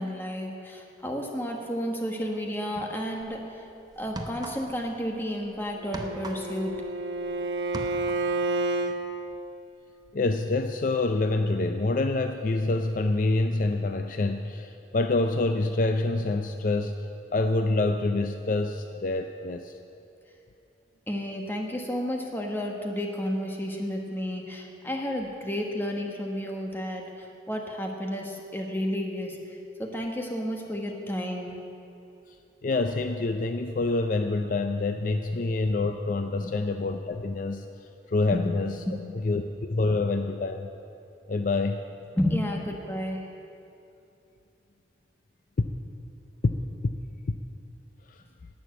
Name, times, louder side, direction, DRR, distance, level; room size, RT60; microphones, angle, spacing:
voice 1, 0.0-3.6 4.0-6.8 21.1-31.6 36.4-36.6 38.3-38.5 38.9-39.2 42.2-43.3, equal, 10° left, 1 dB, 1.2 m, -32 dB
sound 1, 3.2-3.4 4.0-4.9 5.2-7.3 7.6-8.4, right 1 dB, 20° right, 0.7 m, -39 dB
Bowed string instrument, 5.8-9.0, right 2 dB, 85° right, 0.9 m, -30 dB
voice 2, 10.1-19.7 32.6-37.7 38.1-38.8 39.2-40.7 41.3-41.8 45.6-45.7 46.4-46.5 46.8-46.9 47.3-47.4 48.1-48.2, left 2 dB, 45° left, 7 dB, 0.4 m, -26 dB
11.0 x 9.1 x 8.0 m, 2.7 s
head